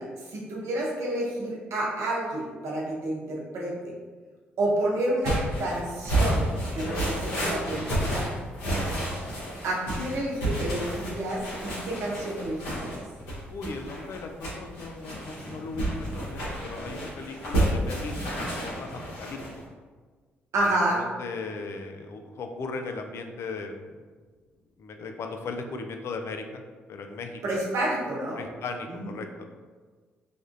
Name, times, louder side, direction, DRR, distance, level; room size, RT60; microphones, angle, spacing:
voice 1, 0.0-3.7 4.6-6.5 6.7-8.2 9.6-12.9 20.5-21.0 27.4-28.4 28.9-29.0, right 1 dB, 65° right, -4 dB, 0.9 m, -29 dB
sound 1, 5.2-19.6, right 1 dB, 80° left, 1.0 m, -30 dB
voice 2, 13.5-19.4 20.7-24.0 24.8-26.6 26.9-27.4 28.4-29.4, left 3 dB, 55° left, 5 dB, 0.4 m, -37 dB
3.4 x 2.5 x 2.4 m, 1.4 s
hypercardioid pair, 45°, 5 cm